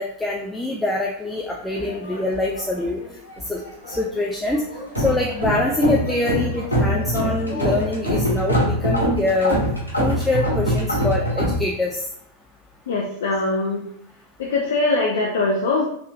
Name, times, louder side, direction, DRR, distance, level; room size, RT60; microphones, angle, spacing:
voice 1, 0.0-3.0 3.5-3.6 3.9-4.6 5.0-9.6 10.0-12.0, left 2 dB, 5° left, -2 dB, 0.5 m, -24 dB
sound 1, 1.7-3.0 3.3-4.1 4.5-11.6, equal, 85° right, 1.4 m, -24 dB
voice 2, 12.9-13.8 14.4-15.9, left 3 dB, 60° left, -1 dB, 0.5 m, -22 dB
4.5 x 3.2 x 2.4 m, 0.74 s
figure-of-eight pair, 90°, 0 cm